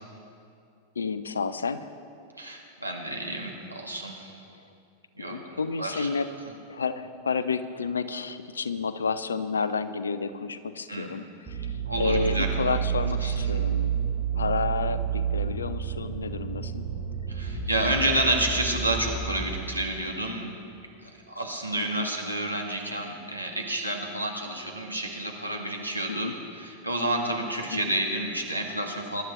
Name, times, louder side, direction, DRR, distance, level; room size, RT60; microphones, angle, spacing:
voice 1, 1.0-1.9 5.3-6.3 6.7-13.9 14.3-16.8 21.8-22.1 26.1-26.3, left 5 dB, 70° left, 13 dB, 0.6 m, -30 dB
voice 2, 2.4-4.3 5.2-6.1 10.9-11.1 11.9-12.8 13.2-13.3 17.3-20.5 21.0-29.2, right 1 dB, 90° right, 0 dB, 1.6 m, -30 dB
sound 1, 11.5-19.5, right 7 dB, 15° right, 3.7 m, -30 dB
22.5 x 11.5 x 3.0 m, 2.5 s
figure-of-eight pair, 90°, 0 cm